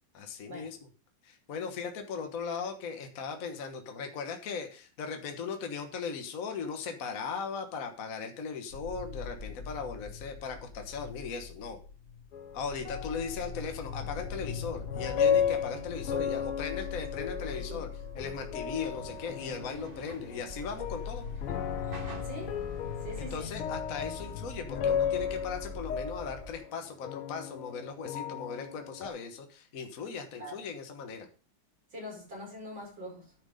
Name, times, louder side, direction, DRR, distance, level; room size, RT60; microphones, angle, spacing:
voice 1, 0.1-0.9 1.2-11.8 12.5-17.9 18.1-21.2 23.2-31.3, left 5 dB, 45° left, 1.5 m, -38 dB
sound 1, 8.7-26.5, left 5 dB, 60° left, 2.3 m, -42 dB
sound 2, 12.3-29.1, left 8 dB, 85° left, 1.8 m, -35 dB
sound 3, 18.8-24.3, right 3 dB, 30° right, 1.3 m, -49 dB
voice 2, 21.9-22.6 23.0-23.5 30.4-30.6 31.9-33.3, equal, 60° right, 5.9 m, -43 dB
10.5 x 6.1 x 5.1 m
omnidirectional pair, 2.3 m